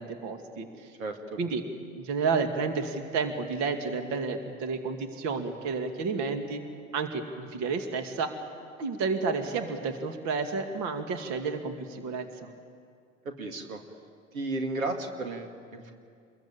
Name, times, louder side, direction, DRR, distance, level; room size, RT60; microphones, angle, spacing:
voice 1, 0.0-0.9 1.4-1.6 1.9-6.6 6.9-8.3 8.8-12.5, right 4 dB, 40° right, 7 dB, 2.4 m, -31 dB
voice 2, 1.0-1.4 13.2-13.8 14.3-15.9, right 2 dB, 75° right, 4 dB, 2.5 m, -34 dB
28.0 x 22.0 x 8.9 m, 2.2 s
figure-of-eight pair, 85°, 42 cm